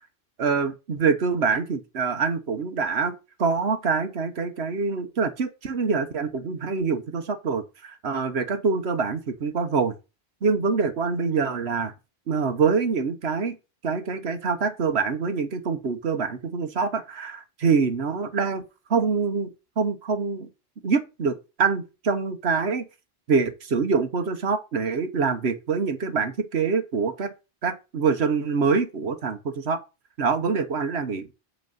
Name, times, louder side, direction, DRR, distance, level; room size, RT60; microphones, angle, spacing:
voice 1, 0.4-3.1 3.4-9.9 10.4-11.9 12.3-13.5 13.8-18.6 18.9-20.5 20.8-22.8 23.3-27.3 27.6-29.8 30.2-31.3, right 5 dB, 80° right, 1.4 m, -25 dB
8.1 x 4.6 x 5.3 m
omnidirectional pair, 1.1 m